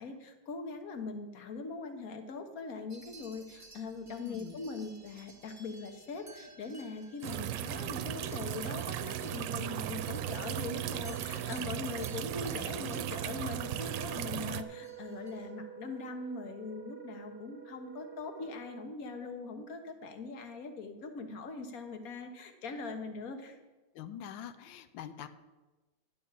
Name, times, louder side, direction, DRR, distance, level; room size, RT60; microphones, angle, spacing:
voice 1, 0.0-23.6, left 4 dB, 55° left, 6 dB, 1.5 m, -41 dB
sound 1, 2.9-15.5, right 2 dB, 10° right, 1.3 m, -57 dB
voice 2, 4.2-4.6 23.9-25.3, left 9 dB, 80° left, 10 dB, 1.4 m, -44 dB
sound 2, 7.2-14.6, right 11 dB, 85° right, 1.3 m, -37 dB
Wind instrument woodwind instrument, 8.9-19.0, right 9 dB, 65° right, 1.2 m, -49 dB
11.0 x 5.6 x 8.4 m, 1.2 s
omnidirectional pair, 2.0 m